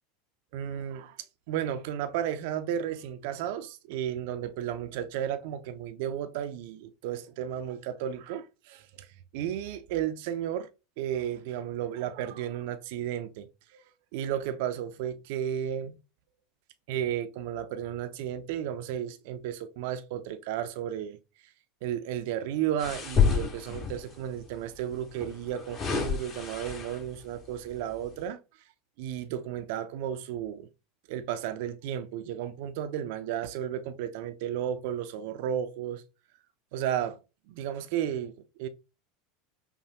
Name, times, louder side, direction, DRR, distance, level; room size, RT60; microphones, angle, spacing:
voice 1, 0.5-1.2 1.5-9.1 9.3-10.7 11.0-13.5 14.1-16.0 16.9-21.2 21.8-28.4 29.0-30.7 31.1-36.0 36.7-37.2 37.5-38.3 38.6-38.7, right 10 dB, 65° right, 0.4 m, -33 dB
sound 1, 22.8-24.1 25.1-27.2 27.7-27.9, left 6 dB, 35° left, 1.5 m, -29 dB
5.7 x 2.2 x 2.9 m
hypercardioid pair, 85°, 0 cm